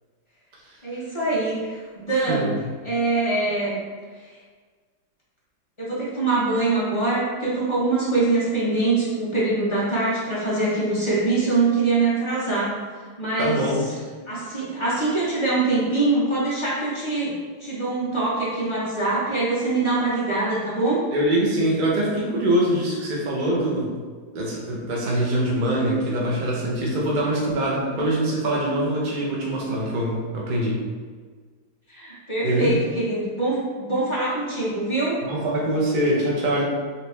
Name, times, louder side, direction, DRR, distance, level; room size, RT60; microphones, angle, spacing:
voice 1, 0.8-2.5 2.8-3.8 5.8-12.8 13.2-13.6 14.3-17.3 17.6-21.0 28.0-28.1 31.9-35.2, right 3 dB, 30° left, -9 dB, 0.6 m, -23 dB
voice 2, 13.4-13.8 21.1-23.9 24.3-30.8 32.4-32.8 35.2-36.6, right 1 dB, 85° right, -4 dB, 0.4 m, -23 dB
4.2 x 2.8 x 3.3 m, 1.5 s
omnidirectional pair, 2.1 m